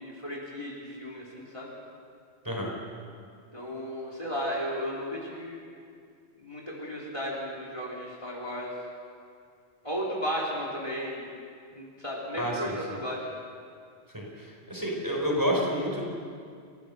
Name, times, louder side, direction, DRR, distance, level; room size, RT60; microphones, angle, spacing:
voice 1, 0.0-1.7 3.5-5.6 6.4-8.7 9.8-11.3 11.7-13.2, equal, 25° left, -4 dB, 3.4 m, -34 dB
voice 2, 12.4-12.7 14.1-14.2 14.7-16.0, equal, 15° right, -2 dB, 4.4 m, -28 dB
29.5 x 14.5 x 6.6 m, 2.3 s
omnidirectional pair, 1.2 m